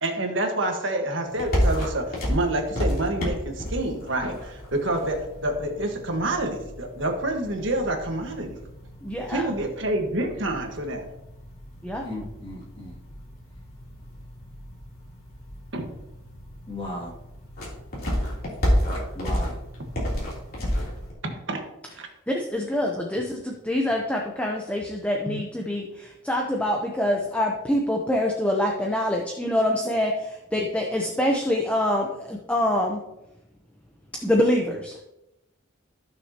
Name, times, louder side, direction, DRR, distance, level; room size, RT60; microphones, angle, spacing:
voice 1, 0.0-8.6 9.3-11.0 15.7-15.9 21.5-21.6 22.0-22.1, right 1 dB, 60° right, 3 dB, 1.5 m, -27 dB
sound 1, 1.3-21.1, equal, 45° left, 3.2 m, -31 dB
voice 2, 9.0-9.5 11.8-12.1 22.3-33.0 34.2-34.9, left 1 dB, 5° left, 0 dB, 0.7 m, -25 dB
voice 3, 12.0-13.0 16.7-17.1 19.1-19.6, left 1 dB, 25° left, -3 dB, 2.4 m, -35 dB
14.5 x 6.4 x 2.9 m, 0.89 s
head